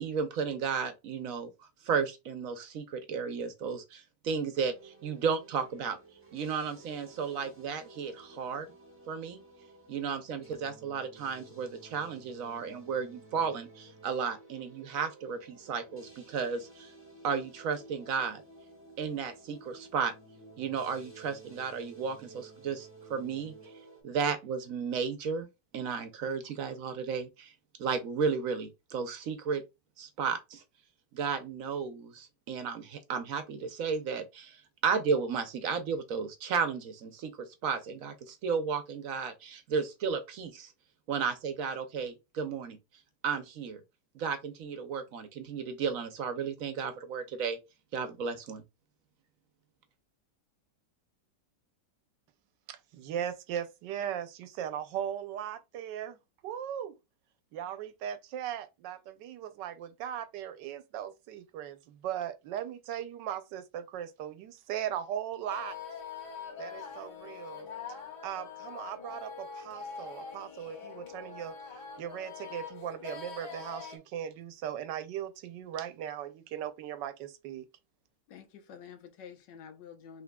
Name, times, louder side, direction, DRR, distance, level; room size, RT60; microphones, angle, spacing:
voice 1, 0.0-6.0 6.3-8.7 9.1-9.4 9.9-16.9 17.2-18.4 19.0-20.1 20.6-23.5 24.0-25.5 25.7-27.5 27.8-29.6 30.0-30.6 31.1-40.7 41.1-42.8 43.2-43.8 44.1-47.6 47.9-48.6, right 6 dB, 60° right, 1.0 m, -33 dB
sound 1, 4.5-24.0, right 3 dB, 10° right, 1.0 m, -54 dB
voice 2, 52.7-56.2 56.4-56.9 57.5-65.8 66.6-67.7 68.2-71.5 72.0-77.6, right 10 dB, 85° right, 1.3 m, -38 dB
sound 2, 65.5-74.0, left 6 dB, 60° left, 2.1 m, -44 dB
voice 3, 78.3-80.2, left 7 dB, 90° left, 1.4 m, -49 dB
4.9 x 3.3 x 2.3 m
omnidirectional pair, 1.9 m